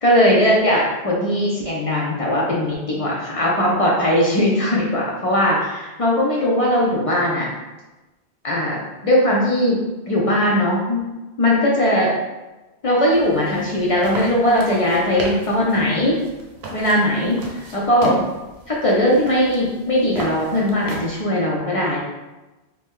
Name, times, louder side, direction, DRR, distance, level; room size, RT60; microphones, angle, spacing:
voice 1, 0.0-7.5 8.4-9.8 10.1-11.0 11.4-12.1 12.8-16.2 16.7-18.2 18.7-22.0, left 1 dB, 50° left, -4 dB, 0.4 m, -19 dB
sound 1, 13.1-21.2, right 2 dB, 90° right, 0.9 m, -35 dB
2.6 x 2.1 x 3.5 m, 1.1 s
omnidirectional pair, 1.1 m